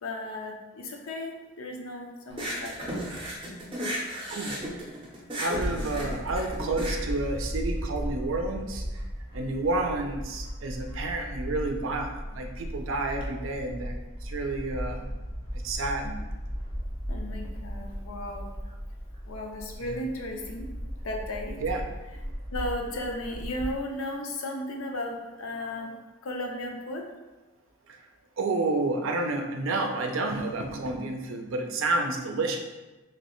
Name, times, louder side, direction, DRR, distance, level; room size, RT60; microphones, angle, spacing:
voice 1, 0.0-2.9 5.8-6.2 16.2-16.3 17.1-18.5 19.3-20.7 21.0-21.6 22.2-27.1, left 1 dB, 85° left, 2 dB, 0.5 m, -35 dB
sound 1, 2.3-8.1, equal, 25° right, 0.5 m, -35 dB
voice 2, 5.4-9.1 9.3-15.1 15.6-16.2 19.8-20.0 21.6-21.8 27.9-28.1 28.4-32.7, right 2 dB, 70° right, 3 dB, 0.4 m, -30 dB
Bird / Wind, 5.5-23.8, equal, 25° left, 0.6 m, -36 dB
3.1 x 2.9 x 3.0 m, 1.2 s
head